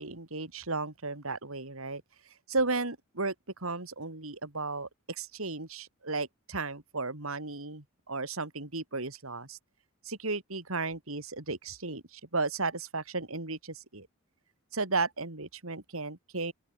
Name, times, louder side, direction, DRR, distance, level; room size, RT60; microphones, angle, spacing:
voice 1, 0.0-2.0 2.5-3.3 3.6-9.6 10.0-14.1 14.7-16.5, right 3 dB, 70° right, 3.2 m, -34 dB
open air
head